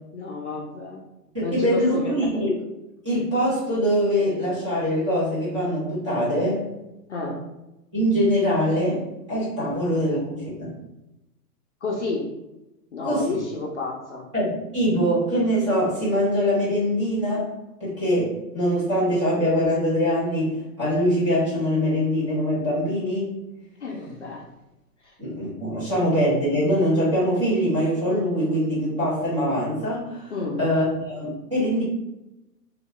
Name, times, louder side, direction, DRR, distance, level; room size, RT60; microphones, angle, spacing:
voice 1, 0.1-1.0 1.4-2.5 7.1-7.5 9.6-9.7 11.8-12.2 12.9-14.2 23.8-24.4 25.9-26.0 30.3-30.6, left 3 dB, 50° left, -2 dB, 0.4 m, -31 dB
voice 2, 1.3-2.5 3.0-6.6 7.9-9.0 9.3-10.7 13.0-13.3 14.3-17.5 17.8-23.3 25.2-30.3 30.6-31.8, equal, 20° right, -10 dB, 0.7 m, -23 dB
2.7 x 2.2 x 2.9 m, 0.96 s
hypercardioid pair, 175°, 48 cm